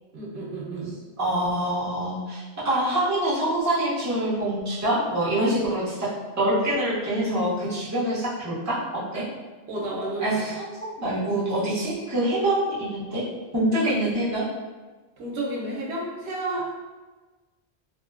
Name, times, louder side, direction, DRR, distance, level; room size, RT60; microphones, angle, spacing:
voice 1, 0.1-0.9 9.7-10.3 15.2-16.7, right 2 dB, 90° right, -3 dB, 0.9 m, -31 dB
voice 2, 1.2-6.1 6.4-8.8 9.1-9.2 10.2-13.2 13.5-14.4, right 1 dB, 20° right, -9 dB, 0.7 m, -25 dB
2.6 x 2.1 x 2.3 m, 1.3 s
omnidirectional pair, 1.0 m